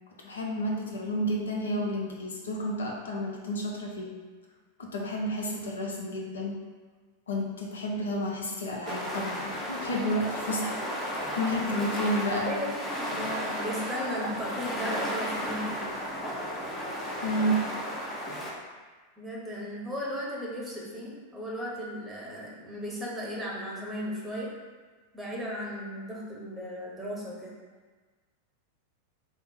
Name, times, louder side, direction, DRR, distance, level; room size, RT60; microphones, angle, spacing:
voice 1, 0.2-4.2 4.8-6.6 7.3-10.8 11.4-12.6 17.2-17.6, equal, 70° left, -1 dB, 0.6 m, -31 dB
sound 1, 8.8-18.5, equal, 15° left, 0.6 m, -34 dB
voice 2, 11.5-15.9 19.2-24.5 25.1-27.5, equal, 10° right, -4 dB, 0.9 m, -36 dB
3.4 x 2.0 x 4.2 m, 1.4 s
figure-of-eight pair, 90°, 0 cm